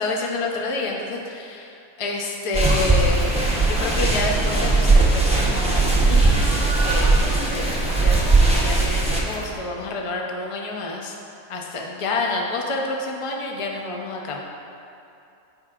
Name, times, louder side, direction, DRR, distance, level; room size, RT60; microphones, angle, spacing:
voice 1, 0.0-11.2 11.5-14.4, left 3 dB, 35° left, 0 dB, 0.6 m, -29 dB
sound 1, 2.5-9.2, right 3 dB, 5° right, 0.7 m, -19 dB
sound 2, 2.6-9.6, right 1 dB, 35° right, 1.2 m, -34 dB
13.5 x 4.7 x 2.5 m, 2.7 s
omnidirectional pair, 1.5 m